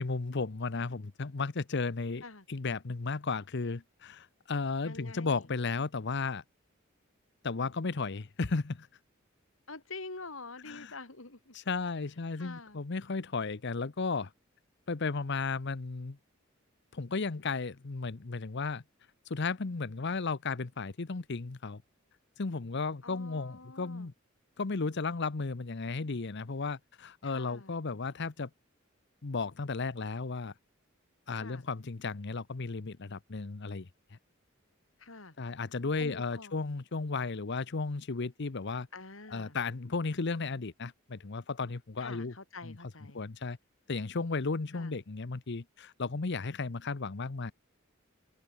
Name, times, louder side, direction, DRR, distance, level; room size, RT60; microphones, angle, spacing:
voice 1, 0.0-2.2 2.5-6.4 7.4-8.9 10.7-10.9 11.5-14.3 14.9-16.2 16.9-18.8 19.3-21.8 22.4-24.1 24.6-28.5 29.2-30.5 31.3-34.2 35.4-38.9 39.3-42.3 42.6-42.8 43.1-43.6 43.9-47.5, left 4 dB, 60° left, 0.8 m, -34 dB
voice 2, 4.8-5.4 9.7-11.5 12.4-12.8 23.0-24.1 27.2-27.8 31.3-31.6 35.0-35.3 36.0-36.5 38.9-39.6 42.0-43.2 44.7-44.9, left 3 dB, 85° left, 3.6 m, -46 dB
open air
head